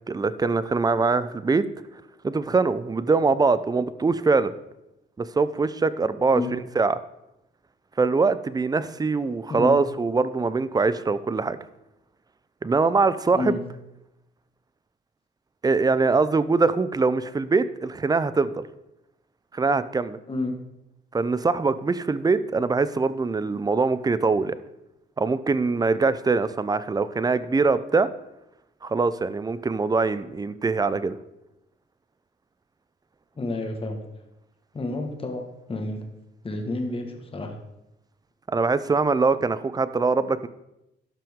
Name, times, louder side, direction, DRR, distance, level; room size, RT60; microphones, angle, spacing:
voice 1, 0.1-1.6 2.2-4.5 5.2-7.0 8.0-11.6 12.6-13.6 15.6-18.7 19.5-20.2 21.1-24.6 25.2-28.1 28.8-31.2 38.5-40.5, right 4 dB, 20° right, 15 dB, 0.5 m, -23 dB
voice 2, 33.4-34.0 34.7-35.4 35.7-36.0 36.4-37.6, left 2 dB, 25° left, 3 dB, 1.6 m, -29 dB
12.0 x 5.9 x 3.6 m, 0.89 s
cardioid pair, 90°, 20 cm